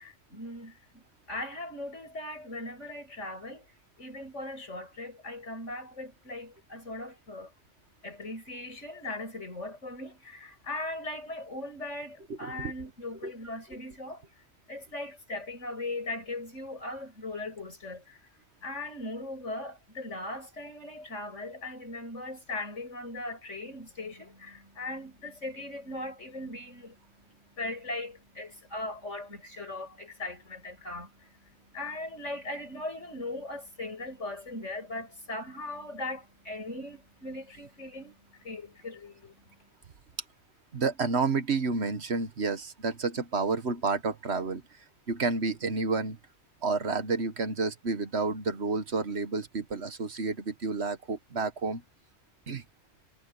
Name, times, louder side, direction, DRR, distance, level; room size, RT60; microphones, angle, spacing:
voice 1, 0.0-3.6 4.0-7.5 8.0-14.2 14.7-18.2 18.6-27.0 27.3-39.6, left 2 dB, 75° left, 8.3 m, -39 dB
voice 2, 12.3-12.7 13.2-13.3 40.7-44.6 45.1-46.2 46.6-51.8 52.5-52.6, right 4 dB, 60° right, 1.6 m, -30 dB
omnidirectional pair, 1.3 m